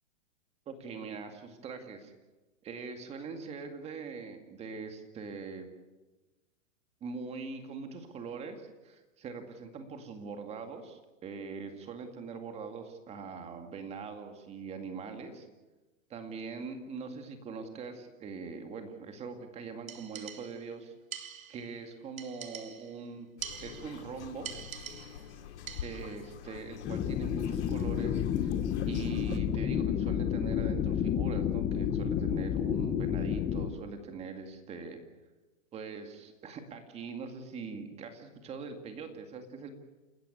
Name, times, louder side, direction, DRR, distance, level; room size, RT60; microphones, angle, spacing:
voice 1, 0.7-2.1 2.6-5.7 7.0-15.5 16.1-20.9 21.5-23.3 23.6-24.5 25.8-28.5 28.9-35.0 35.7-39.7, right 5 dB, 15° right, 6 dB, 2.2 m, -42 dB
sound 1, 19.9-20.7 21.1-21.7 22.2-23.0 23.4-24.1 24.4-25.3 25.7-26.2, right 8 dB, 85° right, 2.5 m, -44 dB
sound 2, 23.4-29.4, left 8 dB, 60° left, 2.5 m, -47 dB
sound 3, 26.8-33.7, left 9 dB, 15° left, 0.8 m, -30 dB
29.5 x 13.5 x 8.6 m, 1.2 s
hypercardioid pair, 160°, 40 cm